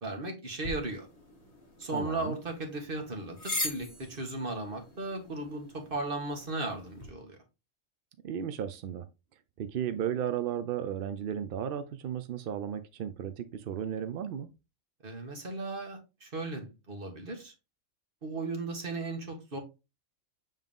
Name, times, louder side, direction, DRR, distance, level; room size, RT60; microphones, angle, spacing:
voice 1, 0.0-1.1 1.8-7.4 15.0-17.5 18.2-19.6, right 2 dB, 40° right, 1.7 m, -36 dB
sound 1, 0.6-7.1, left 2 dB, 30° left, 1.7 m, -41 dB
voice 2, 1.9-2.4 8.2-9.1 9.6-14.5, right 9 dB, 65° right, 0.5 m, -34 dB
7.4 x 3.6 x 3.5 m
omnidirectional pair, 1.4 m